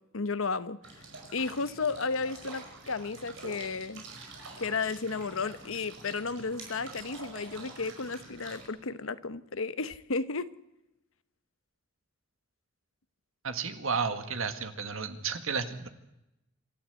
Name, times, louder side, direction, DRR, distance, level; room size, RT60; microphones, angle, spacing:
voice 1, 0.1-0.8 1.3-4.1 4.6-10.5, left 4 dB, 90° left, 14 dB, 1.0 m, -33 dB
sound 1, 0.8-8.7, right 3 dB, 65° right, 5.4 m, -47 dB
voice 2, 13.4-15.9, right 5 dB, 85° right, 8 dB, 1.9 m, -32 dB
26.5 x 13.0 x 8.2 m, 0.89 s
head